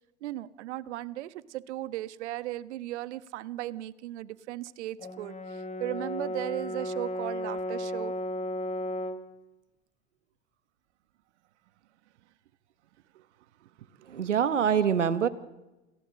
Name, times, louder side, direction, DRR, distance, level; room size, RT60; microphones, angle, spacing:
voice 1, 0.2-8.1 13.1-13.3 13.6-14.3, right 15 dB, 70° right, 15 dB, 1.3 m, -37 dB
Brass instrument, 5.0-9.3, left 1 dB, 20° left, 2.6 m, -34 dB
voice 2, 14.1-15.3, right 8 dB, 90° right, 12 dB, 1.4 m, -25 dB
28.5 x 18.5 x 7.5 m, 1.0 s
hypercardioid pair, 85°, 35 cm